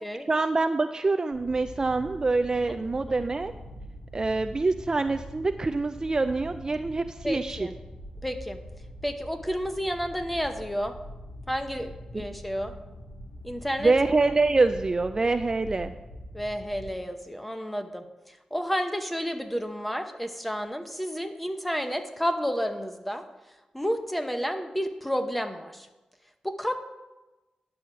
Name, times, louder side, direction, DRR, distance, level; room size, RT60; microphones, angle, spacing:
voice 1, 0.3-3.5 4.1-7.7 13.8-15.9, right 3 dB, 30° right, 8 dB, 0.4 m, -25 dB
sound 1, 1.3-16.9, equal, 90° left, 2.4 m, -43 dB
voice 2, 7.2-7.7 8.2-8.6 9.0-10.9 11.5-12.7 13.4-13.9 16.3-23.2 23.7-25.9 26.4-26.8, equal, 5° left, 6 dB, 0.9 m, -31 dB
10.0 x 4.8 x 6.9 m, 1.1 s
wide cardioid pair, 90°, 2 cm